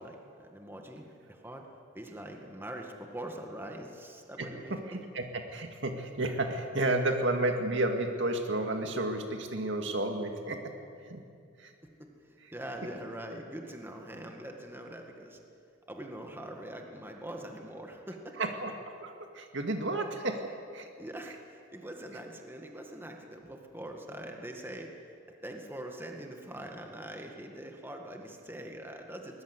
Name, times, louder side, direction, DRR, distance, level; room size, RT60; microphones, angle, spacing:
voice 1, 0.0-1.7 1.9-5.0 11.8-15.4 15.9-18.4 21.0-24.9 25.4-29.4, right 1 dB, 10° right, 2 dB, 1.9 m, -43 dB
voice 2, 4.9-10.7 11.1-11.2 11.6-11.7 18.4-20.9, right 2 dB, 65° right, 4 dB, 2.2 m, -32 dB
21.5 x 20.5 x 8.2 m, 2.4 s
head